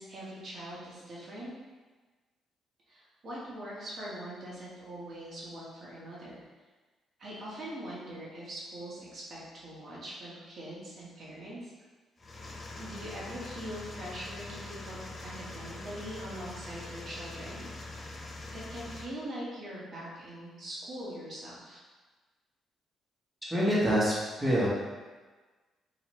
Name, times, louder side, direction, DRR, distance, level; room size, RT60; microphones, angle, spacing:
voice 1, 0.0-1.5 2.9-6.4 7.2-11.7 12.7-18.1 18.5-21.8, right 1 dB, 50° right, -7 dB, 1.3 m, -42 dB
sound 1, 12.2-19.1, left 2 dB, 30° left, 0.6 m, -43 dB
voice 2, 23.5-24.7, equal, 20° right, -7 dB, 1.3 m, -26 dB
3.1 x 3.0 x 3.1 m, 1.3 s
cardioid pair, 90°, 0 cm